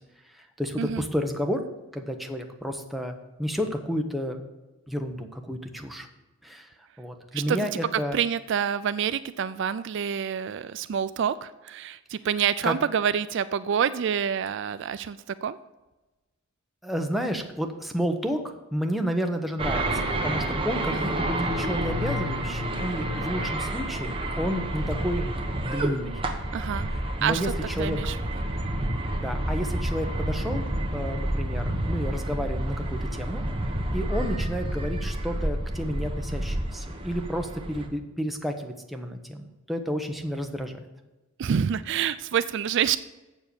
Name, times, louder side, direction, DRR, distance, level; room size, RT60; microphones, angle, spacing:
voice 1, 0.6-1.6 1.9-3.1 3.4-4.4 4.9-6.1 6.4-6.7 7.0-8.2 12.6-12.7 16.8-19.9 20.2-25.3 25.6-26.2 27.2-27.5 27.8-28.0 29.1-30.6 30.9-33.4 33.9-40.8, equal, ahead, 3 dB, 0.9 m, -31 dB
voice 2, 7.3-15.6 20.9-21.2 26.5-26.9 27.2-27.5 27.8-28.4 41.4-43.0, right 8 dB, 55° right, 14 dB, 0.3 m, -27 dB
sound 1, 19.6-37.9, right 1 dB, 25° right, 1.1 m, -29 dB
7.6 x 7.3 x 6.8 m, 1.1 s
head